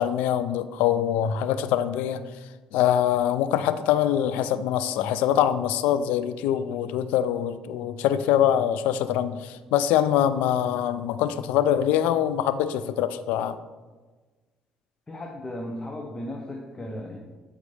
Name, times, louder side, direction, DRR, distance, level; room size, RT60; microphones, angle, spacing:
voice 1, 0.0-2.2 2.7-13.6, left 10 dB, 85° left, 13 dB, 0.4 m, -24 dB
voice 2, 15.1-17.2, left 1 dB, 20° left, 0 dB, 0.9 m, -35 dB
8.3 x 5.0 x 3.3 m, 1.3 s
supercardioid pair, 80°, 3 cm